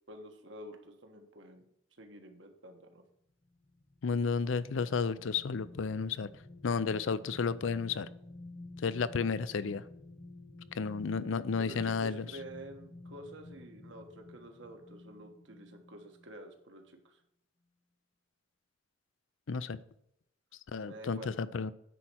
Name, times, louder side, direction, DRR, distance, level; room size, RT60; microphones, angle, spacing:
voice 1, 0.1-1.7 2.0-3.0 11.6-17.2 20.9-21.3, right 1 dB, 70° right, 4 dB, 1.4 m, -49 dB
sound 1, 3.4-16.4 16.8-17.0, left 2 dB, 35° left, 1.1 m, -52 dB
voice 2, 4.0-6.3 6.6-8.1 8.8-9.8 10.7-12.2 19.5-19.8 20.7-21.7, left 5 dB, 80° left, 16 dB, 0.5 m, -32 dB
10.0 x 4.3 x 6.3 m, 0.76 s
head